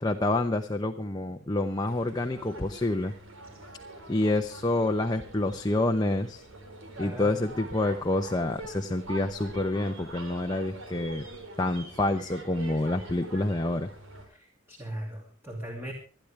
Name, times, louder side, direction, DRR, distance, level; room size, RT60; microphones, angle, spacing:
voice 1, 0.0-3.1 4.1-6.4 7.0-11.2 11.6-13.9, left 2 dB, 20° left, 4 dB, 0.9 m, -28 dB
sound 1, 1.8-14.3, right 2 dB, 70° right, 4.1 m, -44 dB
voice 2, 7.0-7.4 14.3-15.9, right 1 dB, 10° right, 0 dB, 2.6 m, -39 dB
26.0 x 10.5 x 3.4 m, 0.38 s
head